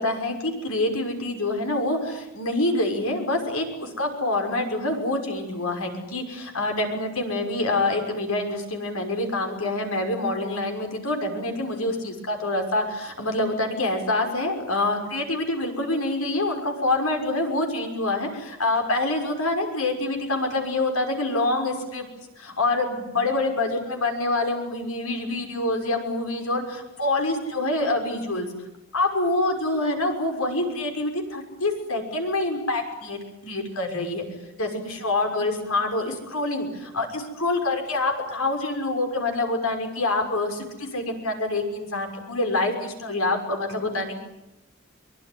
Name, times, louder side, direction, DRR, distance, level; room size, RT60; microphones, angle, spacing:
voice 1, 0.0-22.1 22.4-28.5 28.9-34.3 34.6-44.2, left 2 dB, 90° left, 4 dB, 6.1 m, -26 dB
23.5 x 22.5 x 9.7 m, 0.93 s
head